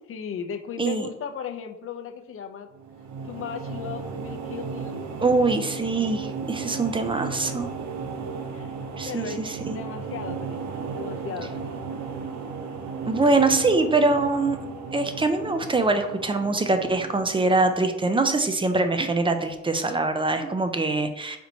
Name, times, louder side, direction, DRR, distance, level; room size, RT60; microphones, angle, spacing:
voice 1, 0.1-2.7 3.2-5.1 6.0-6.1 8.5-8.8 9.1-12.0, left 7 dB, 45° left, 6 dB, 0.5 m, -37 dB
sound 1, 2.7-18.1, right 5 dB, 65° right, 0.6 m, -35 dB
voice 2, 5.2-7.7 9.0-9.8 13.1-14.6 14.9-21.4, right 3 dB, 15° right, 7 dB, 0.4 m, -23 dB
4.3 x 4.1 x 2.7 m, 0.94 s
cardioid pair, 90°, 30 cm